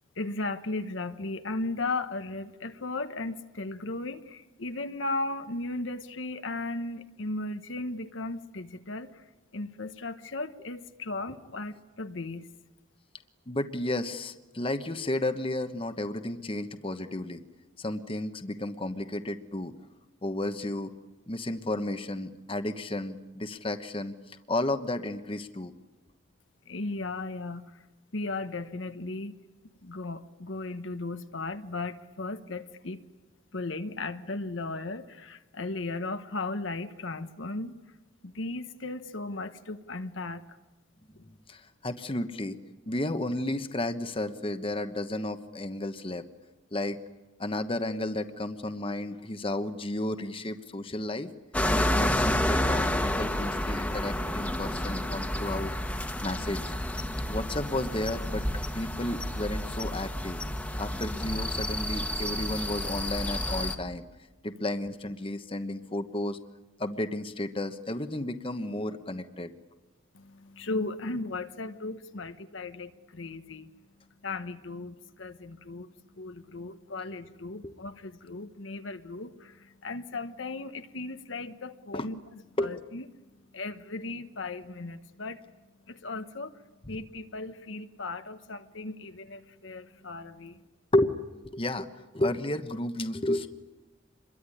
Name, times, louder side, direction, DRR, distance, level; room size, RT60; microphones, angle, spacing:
voice 1, 0.2-9.2 9.5-12.5 26.7-27.8 28.1-29.4 29.8-33.0 33.5-37.7 38.2-40.4 41.1-41.2 70.1-73.7 74.2-82.2 82.6-83.0 83.5-85.5 85.9-90.6, left 2 dB, 65° left, 9 dB, 1.1 m, -36 dB
voice 2, 13.5-17.4 17.8-19.7 20.2-20.9 21.3-25.7 41.5-42.6 42.9-46.2 46.7-47.0 47.4-51.3 51.8-55.7 56.2-60.4 60.8-64.1 64.4-66.4 66.8-69.5 77.6-77.7 81.9-82.1 82.6-82.7 90.9-91.9 92.1-93.5, left 1 dB, 25° left, 8 dB, 1.1 m, -32 dB
sound 1, 51.5-63.8, left 1 dB, 5° left, 1.5 m, -30 dB
27.0 x 22.5 x 9.9 m, 1.1 s
head